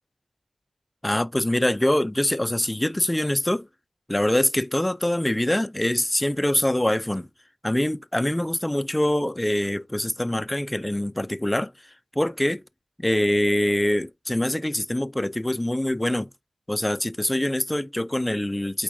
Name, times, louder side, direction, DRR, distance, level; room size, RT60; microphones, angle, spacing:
voice 1, 1.0-3.7 4.1-7.3 7.6-11.7 12.2-12.6 13.0-16.3 16.7-18.8, left 1 dB, 15° left, 0.3 m, -24 dB
4.6 x 4.2 x 2.5 m
wide cardioid pair, 55°, 0 cm